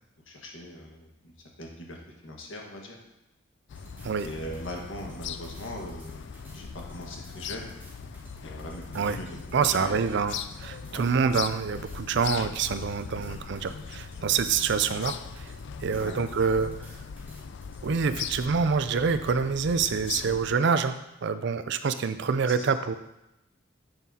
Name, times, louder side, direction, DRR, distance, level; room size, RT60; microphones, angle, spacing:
voice 1, 0.3-1.3 1.6-2.0 2.2-3.0 4.2-7.7 8.4-9.3 9.6-10.0 10.9-11.1 13.2-13.4 15.9-16.1 20.2-20.4 22.5-22.6, left 1 dB, 85° left, 0 dB, 1.6 m, -40 dB
sound 1, 3.7-20.5, left 7 dB, 65° left, 0.4 m, -40 dB
sound 2, 3.7-18.2, left 1 dB, 10° right, 1.6 m, -50 dB
voice 2, 9.5-15.5 15.8-16.9 17.8-22.9, right 5 dB, 65° right, 12 dB, 0.4 m, -26 dB
8.0 x 7.3 x 2.8 m, 0.90 s
head